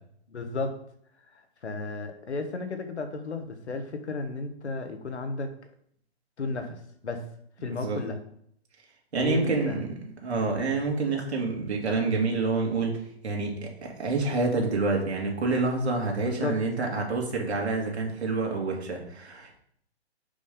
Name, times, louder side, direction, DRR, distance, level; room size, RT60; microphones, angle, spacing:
voice 1, 0.3-0.8 1.3-5.5 6.4-7.2 7.6-8.2 9.2-9.8 16.2-16.6, left 3 dB, 85° left, 6 dB, 1.2 m, -34 dB
voice 2, 7.7-8.0 9.1-19.6, right 3 dB, 75° right, 0 dB, 2.2 m, -28 dB
5.2 x 5.2 x 3.7 m, 0.68 s
hypercardioid pair, 145°, 33 cm